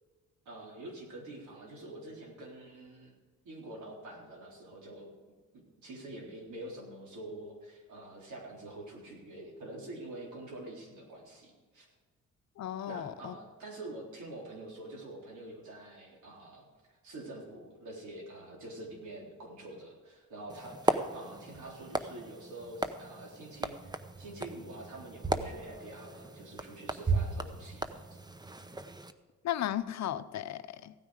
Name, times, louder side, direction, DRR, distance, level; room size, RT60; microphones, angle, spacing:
voice 1, 0.5-3.1 3.5-5.1 5.5-11.9 12.9-28.2, right 1 dB, 75° right, -2 dB, 3.8 m, -46 dB
voice 2, 12.6-13.3 29.4-30.9, left 11 dB, 60° left, 12 dB, 0.7 m, -35 dB
sound 1, 20.5-29.1, right 3 dB, 15° right, 0.7 m, -36 dB
16.0 x 9.3 x 4.9 m, 1.4 s
cardioid pair, 90°, 30 cm